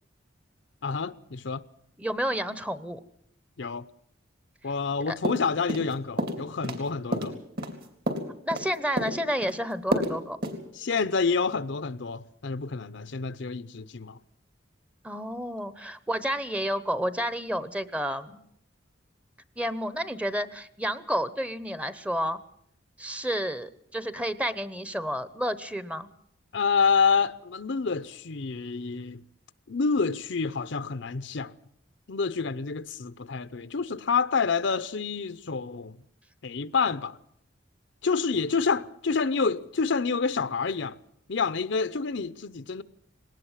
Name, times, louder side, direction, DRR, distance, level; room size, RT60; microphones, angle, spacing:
voice 1, 0.8-1.6 3.6-3.8 4.6-7.4 10.8-14.2 26.5-29.2 29.7-31.5 32.1-36.0 36.4-37.2 38.0-41.0 41.3-42.8, left 5 dB, 65° left, 0.7 m, -28 dB
voice 2, 2.0-3.0 4.6-4.7 5.1-5.2 8.4-10.4 15.0-18.4 19.6-22.4 23.0-26.1, equal, 5° right, 0.9 m, -30 dB
sound 1, 5.2-5.9 6.2-6.8 7.1-8.7 9.0-9.5 9.9-10.1 10.4-10.6, right 1 dB, 55° right, 3.4 m, -29 dB
20.0 x 18.5 x 7.3 m
head